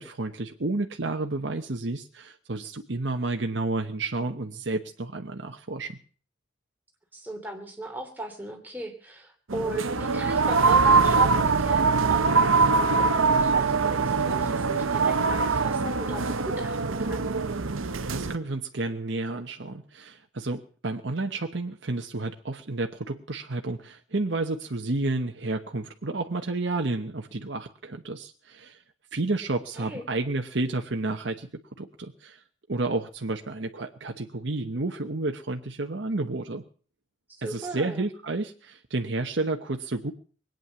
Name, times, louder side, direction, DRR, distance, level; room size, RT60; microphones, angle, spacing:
voice 1, 0.0-6.0 18.1-28.8 29.1-31.5 31.8-32.4 32.7-36.6 37.4-40.1, right 2 dB, 60° right, 4 dB, 1.0 m, -31 dB
voice 2, 7.1-17.3 29.8-30.1 37.3-38.0, right 1 dB, 10° right, 2 dB, 2.8 m, -38 dB
sound 1, 9.5-18.4, right 4 dB, 90° right, 0.9 m, -23 dB
21.0 x 9.2 x 6.9 m, 0.43 s
head